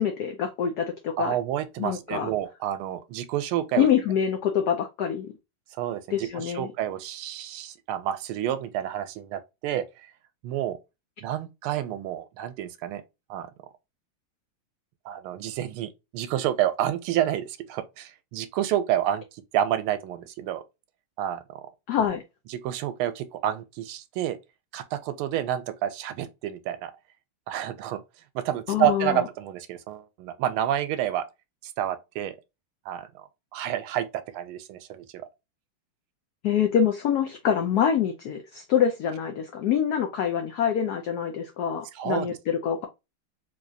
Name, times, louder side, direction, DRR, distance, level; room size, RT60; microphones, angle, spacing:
voice 1, 0.0-1.4 1.8-2.3 3.8-5.3 6.1-6.7 21.9-22.2 28.7-29.2 36.4-42.9, left 8 dB, 85° left, 0.8 m, -25 dB
voice 2, 1.2-3.9 5.8-10.1 10.4-10.8 11.2-13.0 13.3-13.5 15.0-20.6 21.2-21.7 22.5-24.4 24.7-26.9 27.5-28.0 28.3-31.2 31.6-32.4 32.9-34.1 34.3-35.3 41.9-42.4, right 11 dB, 90° right, 1.4 m, -29 dB
3.8 x 3.0 x 2.6 m
omnidirectional pair, 2.3 m